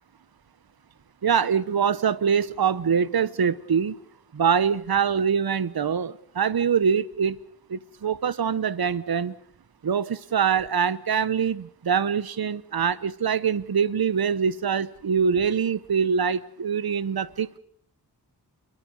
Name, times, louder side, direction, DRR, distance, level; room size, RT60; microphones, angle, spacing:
voice 1, 1.2-4.0 4.3-7.4 7.7-9.3 9.8-17.6, right 7 dB, 60° right, 1.0 m, -24 dB
29.0 x 23.0 x 5.3 m
wide cardioid pair, 85°, 41 cm